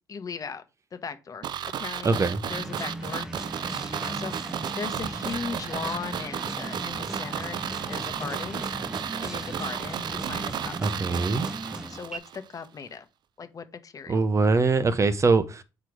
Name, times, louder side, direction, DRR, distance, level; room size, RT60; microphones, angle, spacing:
voice 1, 0.1-0.6 0.9-1.4 1.7-2.2 2.5-3.3 3.6-4.3 4.8-7.6 7.9-8.7 9.2-10.8 11.9-13.0 13.4-14.3, left 5 dB, 40° left, 1.1 m, -37 dB
sound 1, 1.4-12.4 12.6-12.7, right 9 dB, 55° right, 0.6 m, -33 dB
voice 2, 2.0-2.4 10.8-11.5 14.1-15.6, right 3 dB, 35° right, 0.9 m, -23 dB
sound 2, 2.5-12.2, right 1 dB, 5° right, 1.0 m, -38 dB
6.1 x 4.5 x 4.9 m
supercardioid pair, 70°, 9 cm